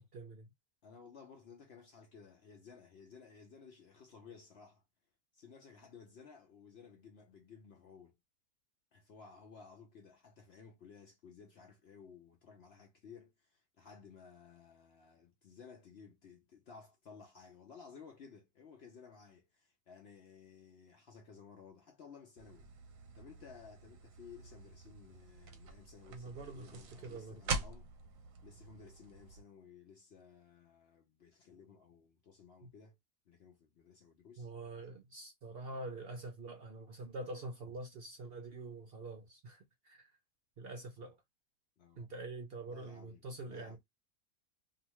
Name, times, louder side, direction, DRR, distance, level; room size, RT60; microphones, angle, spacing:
voice 1, 0.1-0.5 26.1-27.4 34.4-40.1 40.6-41.2 42.0-43.8, right 2 dB, 55° right, 0.7 m, -46 dB
voice 2, 0.8-4.8 5.3-8.2 8.9-22.7 23.1-27.9 28.4-33.0 33.3-34.5 41.8-42.1 42.6-43.8, left 6 dB, 60° left, 0.7 m, -56 dB
sound 1, 22.4-29.4, right 3 dB, 70° right, 1.0 m, -45 dB
2.7 x 2.2 x 2.9 m
omnidirectional pair, 1.5 m